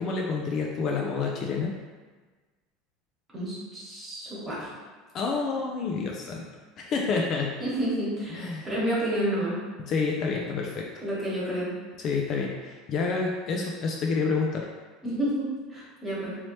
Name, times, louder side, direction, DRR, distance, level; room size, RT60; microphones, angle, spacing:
voice 1, 0.0-1.7 5.1-6.5 6.8-7.5 8.3-8.7 9.8-10.9 12.0-14.7, left 4 dB, 40° left, 0 dB, 0.4 m, -28 dB
voice 2, 3.3-4.7 7.6-9.6 11.0-11.7 15.0-16.4, right 1 dB, 15° right, -8 dB, 1.3 m, -30 dB
3.1 x 2.8 x 3.1 m, 1.3 s
supercardioid pair, 135°, 0 cm